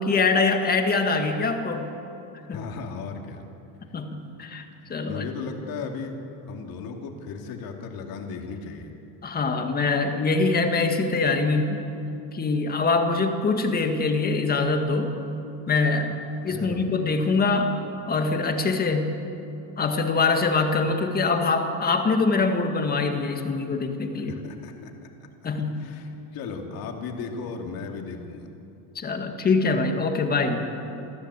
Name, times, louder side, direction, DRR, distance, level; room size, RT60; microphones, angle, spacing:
voice 1, 0.0-1.8 2.5-2.6 3.9-5.3 9.2-11.9 12.3-15.1 15.7-16.2 16.4-17.7 18.1-19.2 19.8-24.3 25.4-25.9 29.0-30.6, left 3 dB, 20° left, 5 dB, 1.8 m, -24 dB
voice 2, 2.5-3.4 4.8-6.2 6.5-8.9 16.5-16.9 24.3-24.9 25.8-28.5, left 5 dB, 50° left, 2 dB, 2.7 m, -36 dB
28.0 x 14.5 x 8.3 m, 2.9 s
cardioid pair, 165°, 45 cm